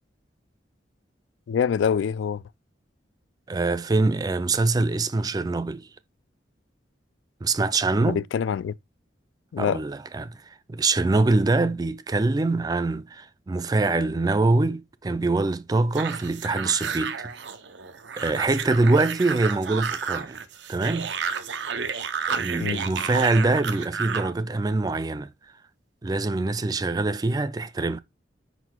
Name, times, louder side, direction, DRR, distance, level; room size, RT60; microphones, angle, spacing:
voice 1, 1.5-2.4 8.0-8.7 9.5-9.8 22.6-22.8, left 7 dB, 90° left, 0.3 m, -25 dB
voice 2, 3.5-5.9 7.4-8.2 9.6-10.4 10.7-17.2 18.2-20.4 20.7-21.1 22.3-25.3 26.0-28.0, right 3 dB, 20° right, 0.3 m, -24 dB
sound 1, 15.9-24.3, right 6 dB, 75° right, 0.7 m, -31 dB
5.3 x 4.1 x 4.4 m
head